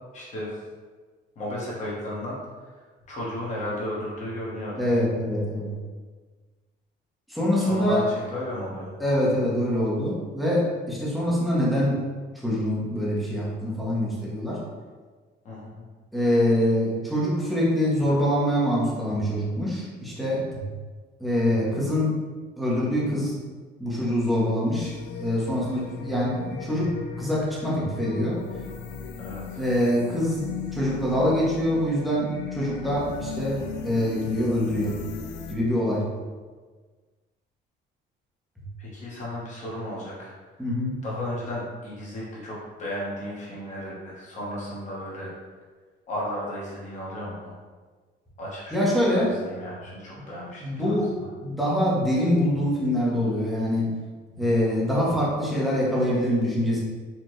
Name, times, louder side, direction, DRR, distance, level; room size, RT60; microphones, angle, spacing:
voice 1, 0.1-0.6 1.4-4.8 7.5-8.9 15.4-15.9 29.2-29.6 38.8-40.3 41.0-45.3 46.1-47.5 48.4-51.0, equal, 40° left, -6 dB, 0.9 m, -34 dB
voice 2, 4.8-5.7 7.3-8.0 9.0-12.1 12.4-14.6 16.1-20.6 21.2-22.1 22.6-23.4 23.8-28.4 29.6-30.4 30.7-32.3 32.5-34.9 35.5-36.1 40.6-41.0 48.7-49.3 50.6-51.1 51.4-53.9 54.3-56.8, equal, ahead, -7 dB, 0.7 m, -24 dB
sound 1, 24.8-35.5, left 6 dB, 65° left, 0.4 m, -37 dB
4.3 x 2.2 x 3.0 m, 1.4 s
cardioid pair, 175°, 20 cm